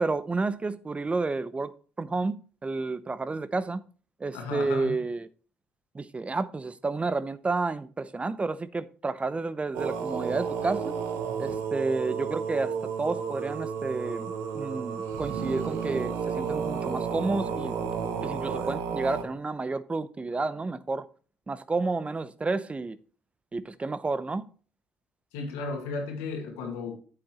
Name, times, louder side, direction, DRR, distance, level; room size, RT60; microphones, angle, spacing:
voice 1, 0.0-1.7 2.0-3.8 4.2-5.3 5.9-11.0 11.4-17.7 18.2-21.0 21.5-23.0 23.5-24.4, right 3 dB, 25° right, 0.6 m, -30 dB
voice 2, 4.3-5.0 25.3-26.9, left 3 dB, 80° left, 2.0 m, -34 dB
sound 1, 9.7-19.2, right 6 dB, 80° right, 1.3 m, -32 dB
8.6 x 7.9 x 3.0 m
hypercardioid pair, 55°, 5 cm